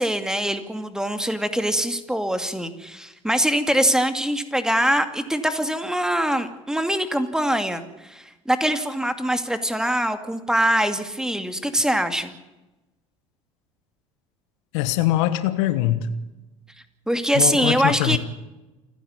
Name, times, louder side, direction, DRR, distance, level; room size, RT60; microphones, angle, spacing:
voice 1, 0.0-12.3 17.1-18.2, equal, 5° right, 9 dB, 2.4 m, -23 dB
voice 2, 14.7-16.1 17.3-18.2, left 14 dB, 70° left, 12 dB, 1.4 m, -22 dB
28.5 x 10.0 x 9.6 m, 1.0 s
hypercardioid pair, 70°, 16 cm